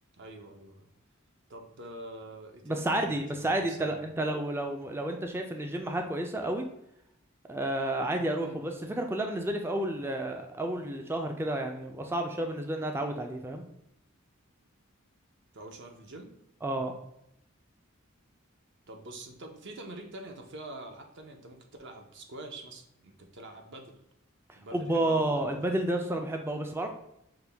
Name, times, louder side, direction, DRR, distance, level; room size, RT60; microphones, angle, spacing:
voice 1, 0.2-0.9 1.5-4.1 8.4-8.6 15.5-16.4 18.9-24.0 24.6-25.6, right 1 dB, 55° right, 3 dB, 0.7 m, -46 dB
voice 2, 2.6-6.7 7.5-13.6 16.6-16.9 24.5-26.9, right 1 dB, 10° right, 4 dB, 0.3 m, -31 dB
5.9 x 2.2 x 3.3 m, 0.80 s
head